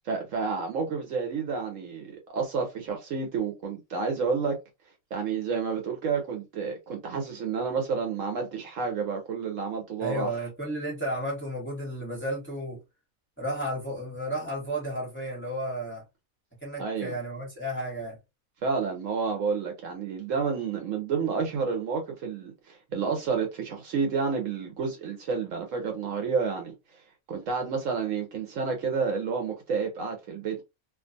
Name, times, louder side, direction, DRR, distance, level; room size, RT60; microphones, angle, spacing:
voice 1, 0.1-4.6 5.1-10.3 16.8-17.2 18.6-27.0 27.3-30.6, right 5 dB, 70° right, 1.0 m, -30 dB
voice 2, 10.0-12.8 13.4-16.0 16.6-18.2, right 1 dB, 10° left, 1.0 m, -33 dB
2.4 x 2.3 x 2.5 m
omnidirectional pair, 1.4 m